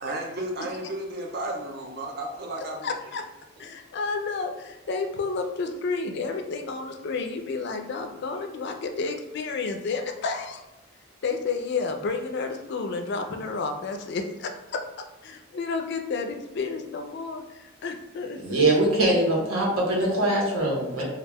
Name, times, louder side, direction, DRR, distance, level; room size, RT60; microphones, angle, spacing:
voice 1, 0.0-2.9, right 1 dB, 50° right, 1 dB, 0.5 m, -33 dB
voice 2, 2.8-3.3 3.6-10.6 11.2-14.8 15.2-18.4 21.0-21.1, left 4 dB, 50° left, 5 dB, 0.3 m, -31 dB
voice 3, 18.4-21.0, right 1 dB, 85° right, -3 dB, 0.9 m, -22 dB
2.3 x 2.1 x 3.3 m, 1.1 s
head